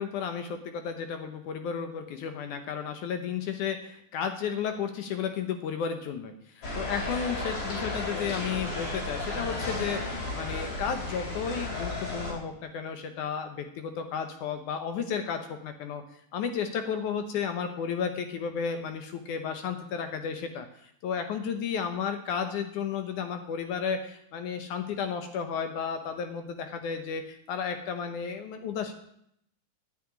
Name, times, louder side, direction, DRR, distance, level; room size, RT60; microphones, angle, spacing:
voice 1, 0.0-16.0 16.3-28.9, left 7 dB, 70° left, 7 dB, 2.1 m, -33 dB
sound 1, 6.6-12.3, left 2 dB, 50° left, 5.0 m, -33 dB
11.0 x 7.7 x 9.9 m, 0.73 s
omnidirectional pair, 4.3 m